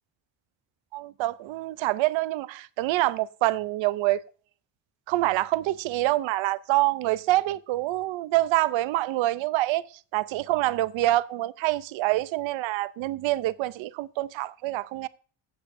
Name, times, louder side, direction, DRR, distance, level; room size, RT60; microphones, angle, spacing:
voice 1, 0.9-4.2 5.1-9.9 10.1-15.1, right 17 dB, 75° right, 0.5 m, -26 dB
15.5 x 8.1 x 2.5 m
cardioid pair, 150°, 46 cm